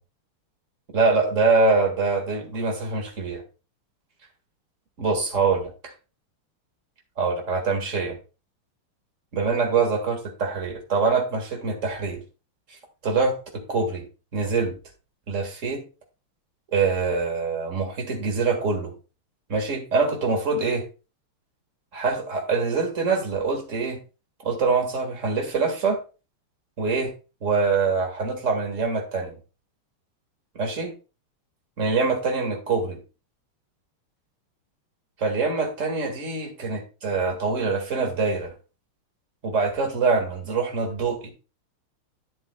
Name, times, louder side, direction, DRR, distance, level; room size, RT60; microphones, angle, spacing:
voice 1, 0.9-3.4 5.0-5.7 7.2-8.2 9.3-12.2 12.7-12.8 13.0-14.1 14.3-14.7 15.3-15.8 16.7-18.9 19.5-20.8 21.9-24.0 24.4-26.0 26.8-27.1 27.4-29.4 30.6-30.9 31.8-33.0 35.2-38.5 39.4-41.3, right 4 dB, 35° right, 4 dB, 2.0 m, -24 dB
11.0 x 7.3 x 2.2 m, 0.32 s
omnidirectional pair, 2.4 m